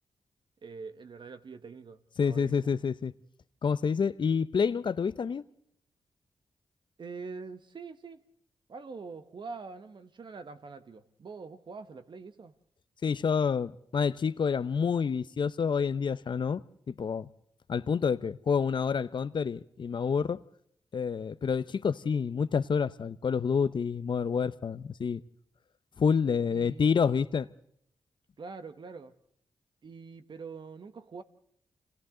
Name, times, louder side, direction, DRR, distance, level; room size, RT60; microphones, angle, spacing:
voice 1, 0.6-2.5 7.0-8.2 8.7-12.5 26.5-26.9 28.4-29.1 29.8-31.2, right 4 dB, 60° right, 1.5 m, -44 dB
voice 2, 2.2-3.1 3.6-5.4 13.0-16.6 16.9-17.3 17.7-20.4 20.9-25.2 26.0-27.5, left 6 dB, 60° left, 0.8 m, -28 dB
29.5 x 26.0 x 3.9 m
supercardioid pair, 45°, 9 cm